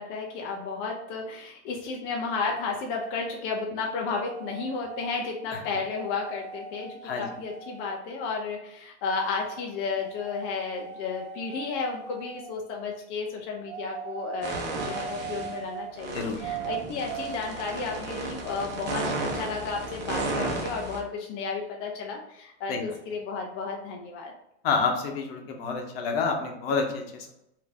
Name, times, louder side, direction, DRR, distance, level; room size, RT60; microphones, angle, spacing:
voice 1, 0.0-24.3, left 4 dB, 35° left, 0 dB, 0.5 m, -33 dB
sound 1, 4.2-5.4 5.9-8.0 9.1-9.7 10.0-12.6 13.6-15.9 16.4-17.4, right 8 dB, 50° right, 0.4 m, -40 dB
sound 2, 14.4-15.6 16.0-21.0, right 2 dB, 30° right, 0.9 m, -33 dB
voice 2, 24.6-27.3, left 4 dB, 60° left, 3 dB, 0.9 m, -28 dB
3.7 x 2.7 x 3.5 m, 0.84 s
supercardioid pair, 135°, 34 cm